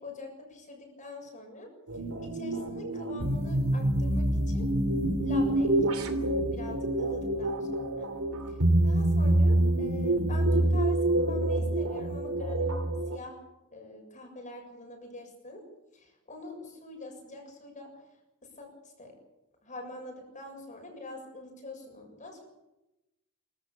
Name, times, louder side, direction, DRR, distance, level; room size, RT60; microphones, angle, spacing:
voice 1, 0.0-1.7 2.2-4.7 5.2-6.2 6.5-8.1 8.8-12.8 13.1-13.4 13.7-15.7 15.9-18.0 18.4-19.2 19.6-22.5, left 2 dB, 35° left, 2 dB, 7.2 m, -44 dB
sound 1, 1.9-13.2, right 1 dB, 85° right, 3.0 m, -26 dB
25.5 x 15.5 x 8.8 m, 0.97 s
head